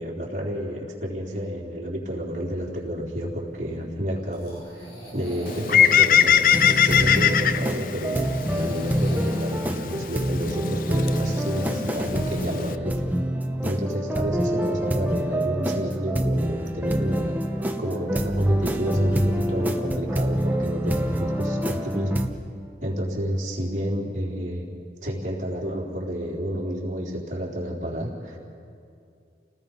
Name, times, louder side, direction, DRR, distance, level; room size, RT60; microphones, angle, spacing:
voice 1, 0.0-13.0 13.6-17.4 17.8-22.3 22.8-24.7 25.0-28.4, equal, 45° right, -4 dB, 4.0 m, -30 dB
sound 1, 2.4-12.5, right 1 dB, 65° left, 7.3 m, -45 dB
Bird, 5.5-12.8, left 9 dB, 50° left, 0.5 m, -23 dB
sound 2, 6.5-22.3, right 1 dB, 10° right, 1.0 m, -26 dB
30.0 x 19.5 x 5.5 m, 2.4 s
head